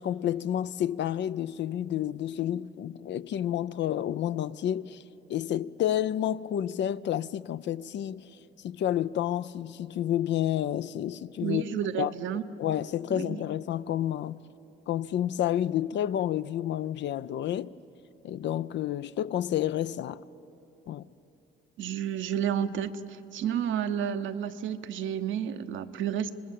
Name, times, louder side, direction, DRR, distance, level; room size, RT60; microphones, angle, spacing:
voice 1, 0.0-5.0 5.3-8.3 8.6-11.6 12.0-12.1 12.6-14.4 14.9-17.7 18.2-20.2 20.9-21.1, left 11 dB, 65° left, 0.5 m, -30 dB
voice 2, 11.4-12.5 13.1-13.4 21.8-26.3, right 9 dB, 75° right, 0.9 m, -31 dB
26.0 x 20.0 x 7.6 m
cardioid pair, 90°, 20 cm